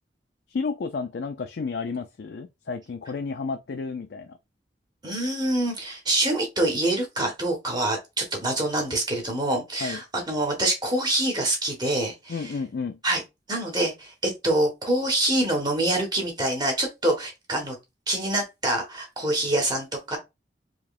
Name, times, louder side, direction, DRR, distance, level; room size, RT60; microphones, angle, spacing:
voice 1, 0.5-4.4 9.8-10.0 12.3-13.0, left 4 dB, 65° left, 0.4 m, -31 dB
voice 2, 5.0-12.5 13.0-13.2 13.5-17.8 18.1-20.2, right 1 dB, 25° right, 1.3 m, -25 dB
4.7 x 3.1 x 2.4 m
head